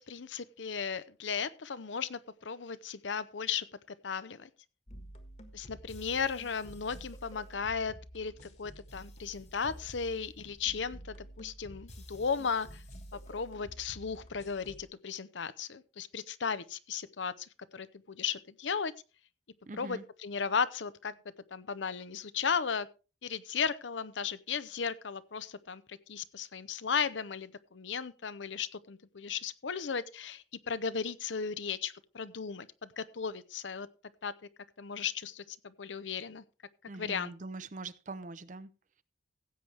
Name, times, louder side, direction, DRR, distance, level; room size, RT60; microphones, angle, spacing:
voice 1, 0.0-3.7 4.0-4.5 5.5-12.8 13.1-18.9 19.7-21.1 21.5-22.9 23.2-33.9 34.2-34.3 34.8-36.4 37.0-37.3, left 6 dB, 85° left, 0.7 m, -36 dB
sound 1, 4.9-14.8, equal, 40° left, 1.4 m, -50 dB
voice 2, 19.7-20.0 36.9-38.7, right 3 dB, 45° right, 0.6 m, -43 dB
16.0 x 7.9 x 3.4 m
head